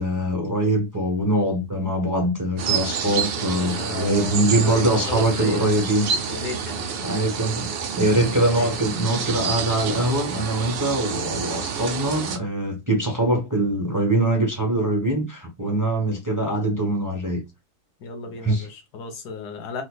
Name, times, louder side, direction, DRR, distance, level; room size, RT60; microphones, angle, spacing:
voice 1, 0.0-6.1 7.0-17.4 18.4-18.7, right 1 dB, 15° right, 0.7 m, -23 dB
sound 1, 2.6-12.4, right 6 dB, 70° right, 0.5 m, -28 dB
voice 2, 3.4-5.9 6.3-6.9 8.4-8.7 18.0-19.8, left 4 dB, 85° left, 1.5 m, -35 dB
4.5 x 2.5 x 2.2 m
omnidirectional pair, 1.7 m